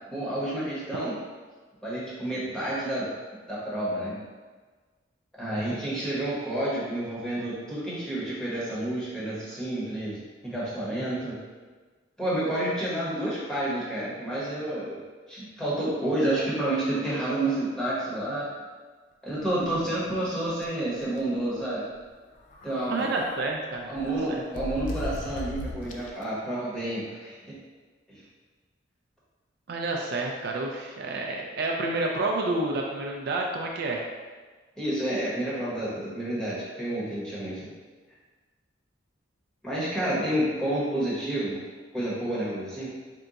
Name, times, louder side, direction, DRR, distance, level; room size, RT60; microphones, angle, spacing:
voice 1, 0.1-1.1 1.8-3.1 3.5-4.2 5.4-10.2 10.4-11.4 12.2-15.0 15.3-18.5 19.2-21.9 22.6-23.1 23.9-27.6 28.1-28.2 34.8-37.7 39.6-41.6 41.9-42.9, right 1 dB, 5° left, -8 dB, 1.0 m, -29 dB
sound 1, 19.3-20.3 20.6-20.7 21.0-21.2 22.4-23.4 24.0-26.2, left 1 dB, 40° left, 0.3 m, -38 dB
voice 2, 22.9-24.4 29.7-34.0, right 2 dB, 55° right, 0 dB, 0.3 m, -29 dB
3.7 x 2.3 x 3.9 m, 1.4 s
head